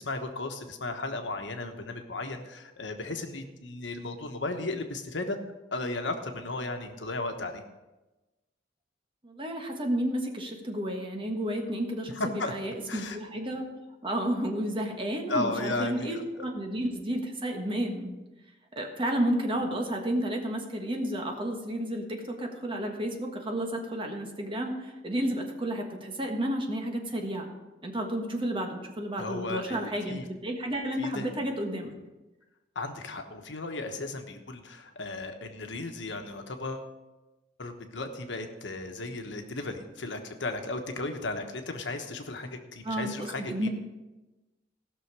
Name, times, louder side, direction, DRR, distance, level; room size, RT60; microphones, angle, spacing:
voice 1, 0.0-5.4 5.7-7.6 12.1-12.5 12.9-13.2 15.3-16.5 29.2-30.2 31.0-31.3 32.7-36.9 37.6-43.7, left 2 dB, 80° left, 6 dB, 1.2 m, -35 dB
voice 2, 9.2-13.7 14.0-18.1 18.7-27.5 27.8-31.9 42.8-43.7, right 1 dB, 30° right, 2 dB, 1.5 m, -31 dB
16.5 x 6.3 x 4.8 m, 1.1 s
head